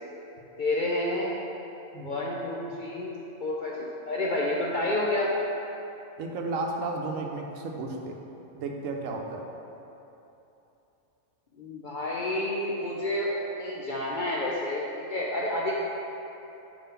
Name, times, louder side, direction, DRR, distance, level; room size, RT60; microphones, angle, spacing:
voice 1, 0.6-1.3 2.0-3.8 4.1-5.3 11.6-15.7, left 1 dB, 60° left, -4 dB, 0.5 m, -29 dB
voice 2, 6.2-8.2 8.5-9.4, right 3 dB, 80° right, 2 dB, 1.0 m, -33 dB
5.1 x 3.7 x 5.6 m, 3.0 s
omnidirectional pair, 1.4 m